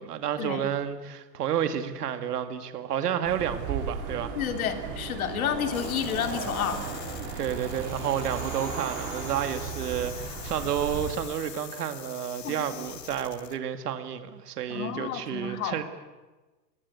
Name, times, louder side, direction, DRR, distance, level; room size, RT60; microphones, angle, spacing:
voice 1, 0.0-4.4 7.4-15.8, right 9 dB, 65° right, 8 dB, 2.3 m, -30 dB
sound 1, 3.2-11.1, right 6 dB, 25° right, 3.7 m, -36 dB
voice 2, 4.4-6.8 12.4-12.7 14.7-15.8, left 8 dB, 55° left, 7 dB, 3.2 m, -30 dB
sound 2, 5.7-13.6, left 11 dB, 80° left, 1.9 m, -44 dB
29.0 x 21.0 x 8.3 m, 1.2 s
supercardioid pair, 175°, 49 cm